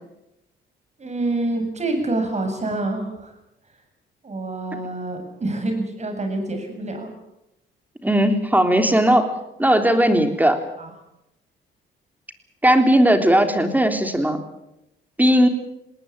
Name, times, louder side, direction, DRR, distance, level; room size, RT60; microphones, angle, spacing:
voice 1, 1.0-3.3 4.2-7.1 10.8-10.9, right 2 dB, 35° right, 5 dB, 7.7 m, -26 dB
voice 2, 8.0-9.3 9.6-10.6 12.6-14.4 15.2-15.5, right 1 dB, 10° right, 6 dB, 3.5 m, -17 dB
20.0 x 19.0 x 8.9 m, 0.88 s
cardioid pair, 90°, 20 cm